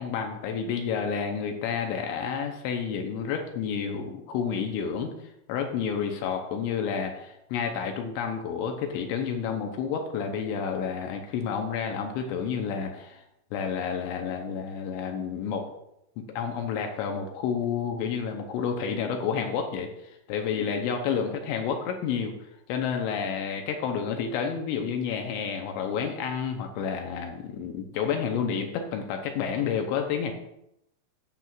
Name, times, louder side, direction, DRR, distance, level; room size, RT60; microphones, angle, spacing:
voice 1, 0.0-5.1 5.5-13.2 13.5-15.7 16.2-19.9 20.3-22.3 22.7-30.3, left 6 dB, 85° left, 4 dB, 2.9 m, -30 dB
15.0 x 6.1 x 2.5 m, 0.81 s
omnidirectional pair, 5.5 m